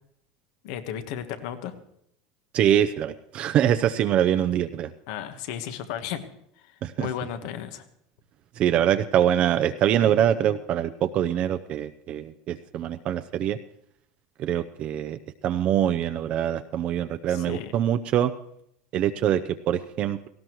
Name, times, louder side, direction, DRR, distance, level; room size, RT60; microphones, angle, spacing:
voice 1, 0.6-1.8 5.1-6.2 6.6-7.8 17.3-17.7, left 9 dB, 70° left, 9 dB, 1.4 m, -34 dB
voice 2, 2.5-4.9 6.8-7.1 8.6-13.6 14.4-18.3 18.9-20.3, right 10 dB, 45° right, 9 dB, 0.6 m, -24 dB
18.5 x 16.0 x 3.1 m, 0.73 s
supercardioid pair, 115°, 3 cm